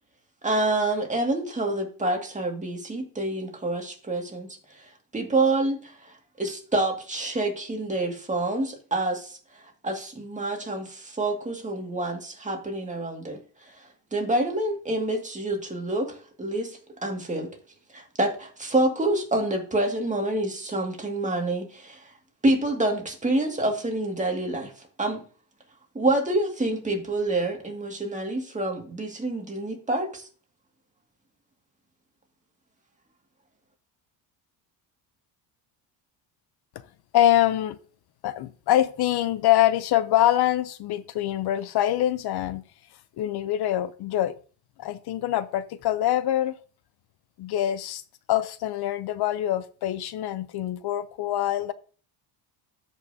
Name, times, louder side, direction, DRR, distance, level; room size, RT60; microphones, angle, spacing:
voice 1, 0.4-13.4 13.6-13.8 14.1-17.5 17.9-22.1 22.4-24.7 25.0-25.3 25.9-30.3, right 2 dB, 15° right, 2.0 m, -27 dB
voice 2, 37.1-37.8 38.2-42.6 43.2-44.3 44.8-46.5 47.4-48.0 48.3-51.7, left 13 dB, 55° left, 0.6 m, -24 dB
13.5 x 5.5 x 2.7 m
cardioid pair, 110°, 46 cm